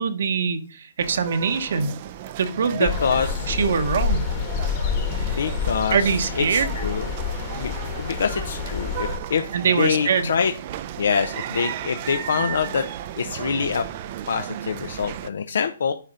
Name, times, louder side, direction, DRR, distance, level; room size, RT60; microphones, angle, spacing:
voice 1, 0.0-1.9 2.4-2.9 3.5-4.2 5.1-5.4 5.9-6.7 9.5-10.3, right 5 dB, 60° right, 8 dB, 1.2 m, -23 dB
sound 1, 1.0-15.3, right 11 dB, 35° right, 0.5 m, -35 dB
voice 2, 2.7-3.5 5.4-7.1 7.5-9.4 9.8-10.5 11.0-12.8 13.2-13.8 14.3-15.9, left 6 dB, 65° left, 7 dB, 0.8 m, -25 dB
sound 2, 2.9-9.2, left 6 dB, 30° left, 1.5 m, -28 dB
10.5 x 4.3 x 5.2 m, 0.38 s
hypercardioid pair, 160°, 0 cm